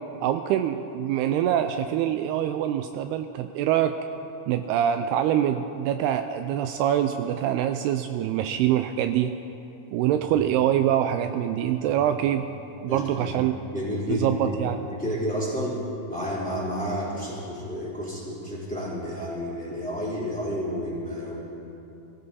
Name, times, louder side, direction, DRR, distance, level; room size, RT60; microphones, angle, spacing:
voice 1, 0.2-3.9 4.5-9.3 9.9-12.5 12.8-13.5 14.1-14.8, right 11 dB, 85° right, 8 dB, 2.4 m, -24 dB
voice 2, 12.9-13.4 13.7-14.6 14.8-15.8 16.1-21.4, equal, ahead, -7 dB, 3.2 m, -30 dB
22.0 x 15.5 x 4.1 m, 2.9 s
omnidirectional pair, 4.8 m